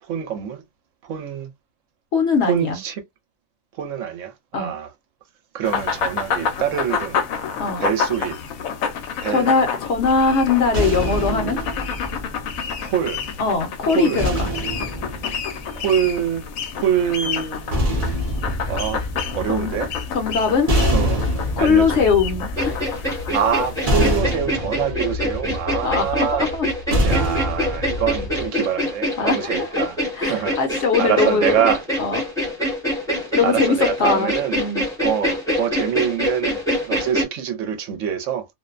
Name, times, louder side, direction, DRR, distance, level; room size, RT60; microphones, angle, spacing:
voice 1, 0.0-0.6 1.0-1.5 2.5-3.0 3.8-4.9 5.5-7.2 7.8-8.4 9.2-9.5 12.8-13.2 13.9-14.2 15.8-16.4 16.7-17.8 18.7-19.0 19.3-19.9 20.9-21.3 21.6-22.0 23.3-26.5 27.0-30.0 30.3-30.6 31.0-31.8 33.2-34.6 35.0-38.5, right 9 dB, 75° right, 0.9 m, -25 dB
voice 2, 2.1-2.8 4.5-4.7 7.6-7.9 9.3-11.6 13.4-14.3 19.5-19.7 20.1-20.7 21.6-22.9 25.8-26.7 29.2-29.9 30.2-31.6 32.0-32.2 33.3-34.9, left 5 dB, 60° left, 0.8 m, -21 dB
sound 1, 5.6-24.2, left 6 dB, 85° left, 1.0 m, -29 dB
sound 2, 9.9-13.2 14.2-16.4 17.4-28.5, equal, 45° right, 0.5 m, -26 dB
sound 3, 22.6-37.2, equal, 5° left, 0.7 m, -25 dB
2.5 x 2.1 x 2.3 m
omnidirectional pair, 1.4 m